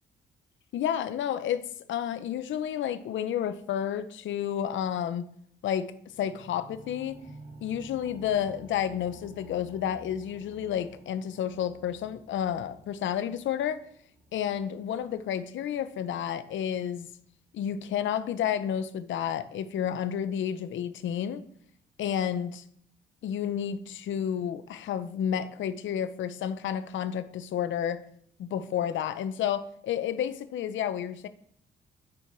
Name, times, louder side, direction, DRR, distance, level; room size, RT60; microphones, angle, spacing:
voice 1, 0.7-1.6 1.9-5.3 5.6-5.9 6.2-7.2 7.6-13.8 14.3-17.1 17.5-21.4 22.0-22.6 23.2-28.0 28.4-31.3, left 9 dB, 70° left, 0.8 m, -31 dB
sound 1, 6.1-16.2 16.9-17.0, right 1 dB, 35° right, 3.0 m, -52 dB
9.7 x 4.8 x 5.9 m
cardioid pair, 90°, 20 cm